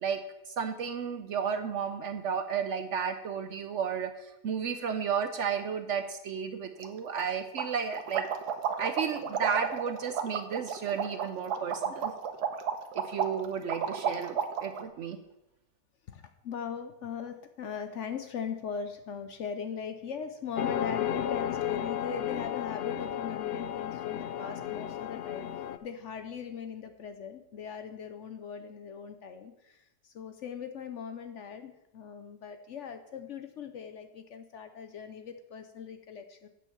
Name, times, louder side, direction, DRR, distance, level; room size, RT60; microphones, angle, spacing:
voice 1, 0.0-8.3 8.8-12.1 12.9-15.2, right 7 dB, 60° right, 8 dB, 0.8 m, -33 dB
sound 1, 6.8-6.9 7.2-7.3 7.6-14.8, right 7 dB, 90° right, 1.4 m, -32 dB
voice 2, 16.1-36.5, left 7 dB, 60° left, 7 dB, 0.8 m, -40 dB
sound 2, 20.6-25.8, left 10 dB, 85° left, 0.5 m, -33 dB
8.5 x 6.4 x 7.0 m, 0.90 s
omnidirectional pair, 1.7 m